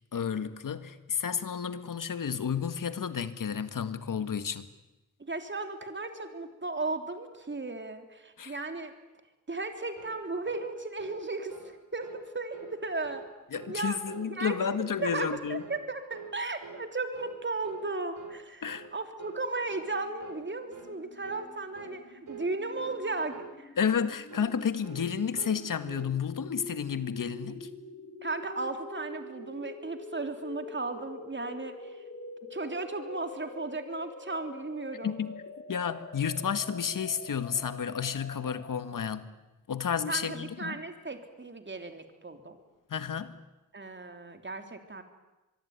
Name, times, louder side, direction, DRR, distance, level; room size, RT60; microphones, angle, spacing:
voice 1, 0.1-4.7 8.4-8.6 13.5-15.6 18.6-18.9 23.8-27.7 35.0-35.4 35.7-39.3 39.7-40.8 42.9-43.4, left 7 dB, 85° left, 1.7 m, -31 dB
voice 2, 5.2-8.9 9.5-13.2 13.7-14.0 14.3-23.8 28.2-32.0 32.5-35.2 40.1-42.6 43.7-45.0, right 3 dB, 35° right, 3.4 m, -36 dB
sound 1, 10.0-10.2 10.5-10.7 11.0-11.2 11.5-11.7 12.0-12.2 12.5-12.7 13.0-13.3 13.5-13.8 14.1-14.3 14.6-14.8 15.1-15.3 15.6-15.8 16.1-16.3 16.6-16.8 17.1-17.4 17.6-17.9 18.1-18.4 18.7-18.9 19.2-19.4 19.7-19.9 20.2-20.4 20.7-20.9 21.2-21.5 21.7-22.0 22.3-22.5 22.8-23.0 23.3-23.5 23.8-24.0 24.3-24.6 24.8-25.0 25.3-26.1, right 5 dB, 80° right, 6.0 m, -45 dB
sound 2, 19.9-39.1, left 3 dB, 45° left, 4.0 m, -46 dB
24.5 x 23.0 x 9.6 m
wide cardioid pair, 80°, 31 cm